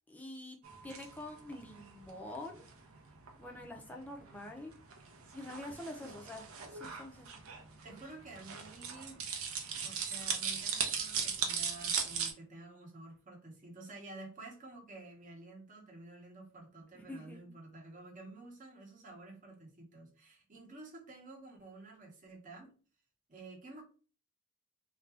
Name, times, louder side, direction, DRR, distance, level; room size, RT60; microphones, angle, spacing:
voice 1, 0.1-0.6 0.8-2.7 3.4-4.7 5.3-7.3 16.9-17.5, left 1 dB, 5° left, 0.5 m, -46 dB
sound 1, 0.6-12.3, right 6 dB, 75° right, 0.6 m, -39 dB
voice 2, 7.8-9.3 9.8-22.7 23.3-23.8, right 2 dB, 40° right, 0.9 m, -51 dB
2.6 x 2.2 x 3.3 m
head